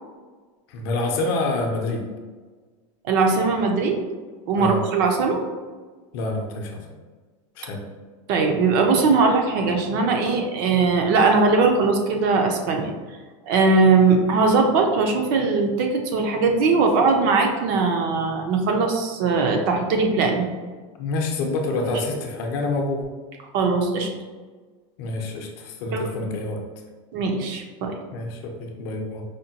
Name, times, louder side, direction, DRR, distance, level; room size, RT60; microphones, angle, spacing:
voice 1, 0.7-2.0 4.6-4.8 6.1-6.8 7.6-7.8 21.0-23.1 25.0-26.6 28.1-29.2, left 2 dB, 50° left, 1 dB, 0.6 m, -27 dB
voice 2, 3.0-4.0 4.5-5.4 8.3-12.9 13.5-20.5 23.5-24.1 25.9-26.1 27.1-27.9, right 4 dB, 45° right, 3 dB, 0.5 m, -20 dB
4.9 x 2.2 x 2.8 m, 1.4 s
supercardioid pair, 170°, 16 cm